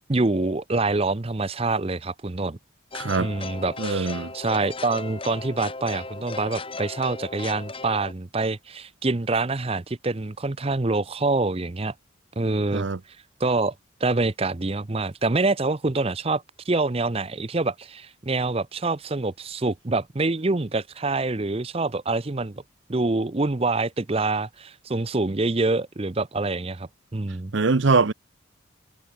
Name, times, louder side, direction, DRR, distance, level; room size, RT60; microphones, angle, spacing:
voice 1, 0.1-2.6 3.2-11.9 12.4-12.9 13.4-13.7 14.0-22.6 22.9-27.5, right 3 dB, 30° right, 0.7 m, -26 dB
sound 1, 2.9-8.1, left 3 dB, 25° left, 2.4 m, -36 dB
voice 2, 2.9-3.3 3.8-4.3 12.7-13.0 27.5-28.1, right 4 dB, 65° right, 0.7 m, -22 dB
head